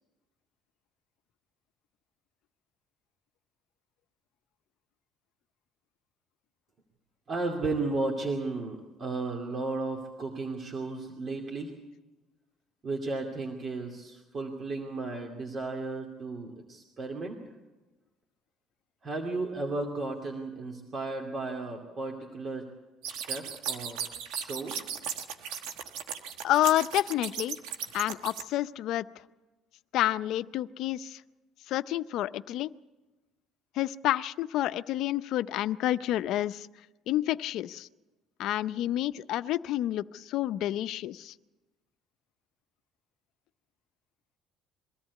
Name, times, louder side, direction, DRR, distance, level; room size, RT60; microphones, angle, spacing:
voice 1, 7.3-11.7 12.8-17.4 19.0-22.7 23.1-24.7, right 3 dB, 40° right, 1 dB, 2.6 m, -34 dB
sound 1, 23.0-28.4, right 8 dB, 85° right, 1.4 m, -36 dB
voice 2, 26.4-27.6 27.9-29.1 29.9-31.2 31.7-32.7 33.8-36.7 37.1-37.9 38.4-41.3, left 13 dB, 70° left, 14 dB, 0.6 m, -29 dB
23.0 x 14.0 x 8.4 m, 1.1 s
cardioid pair, 105°, 0 cm